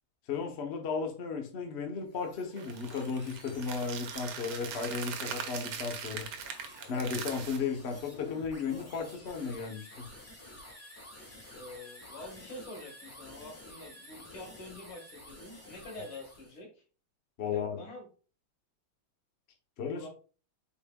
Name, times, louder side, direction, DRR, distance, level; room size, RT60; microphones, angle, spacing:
voice 1, 0.3-6.3 6.9-10.1 17.4-17.8 19.8-20.1, left 5 dB, 55° left, 3 dB, 0.7 m, -35 dB
sound 1, 1.9-16.6, left 1 dB, 15° left, 0.6 m, -51 dB
sound 2, 2.6-7.6, right 7 dB, 85° right, 1.6 m, -41 dB
voice 2, 11.5-16.7 17.4-18.1 19.9-20.1, left 2 dB, 85° left, 1 dB, 2.4 m, -46 dB
5.7 x 4.2 x 2.2 m, 0.37 s
omnidirectional pair, 2.3 m